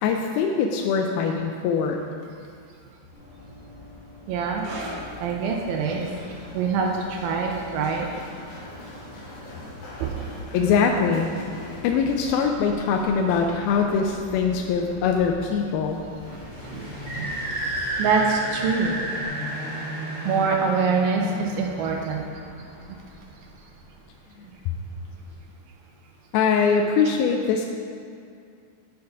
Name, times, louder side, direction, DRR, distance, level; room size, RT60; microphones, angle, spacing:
voice 1, 0.0-2.0 10.5-11.3 11.8-16.0 26.3-27.7, left 6 dB, 85° left, 2 dB, 2.4 m, -22 dB
Run, 3.1-19.2, left 1 dB, 60° left, 1.7 m, -42 dB
voice 2, 4.3-4.7 5.2-6.1 6.5-8.2 10.0-10.1 16.6-16.9 17.1-17.3 18.0-19.0 20.2-22.2 22.9-23.0, right 5 dB, 85° right, 0 dB, 2.4 m, -25 dB
sound 1, 4.6-11.6 11.8-12.1 12.8-12.9, right 1 dB, 70° right, 1.9 m, -44 dB
sound 2, 16.2-23.5, right 1 dB, 20° right, 1.2 m, -32 dB
7.1 x 6.6 x 5.2 m, 2.3 s
omnidirectional pair, 4.3 m